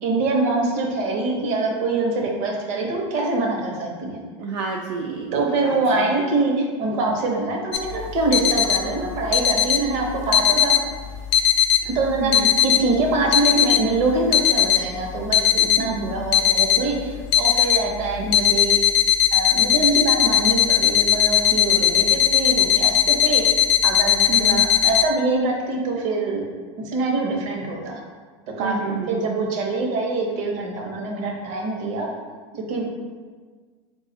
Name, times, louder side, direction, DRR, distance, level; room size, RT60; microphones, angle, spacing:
voice 1, 0.0-4.2 5.3-10.8 11.8-18.8 19.3-23.4 23.8-26.4 26.8-28.0 28.6-32.1 32.5-32.8, right 3 dB, 55° right, 0 dB, 0.8 m, -24 dB
voice 2, 4.4-6.0 12.2-12.5 15.8-16.1 24.3-24.7 28.6-29.2, right 3 dB, 75° right, 0 dB, 0.4 m, -29 dB
sound 1, 7.7-25.0, left 9 dB, 70° left, 0.4 m, -19 dB
3.6 x 2.3 x 4.0 m, 1.5 s
supercardioid pair, 125°, 15 cm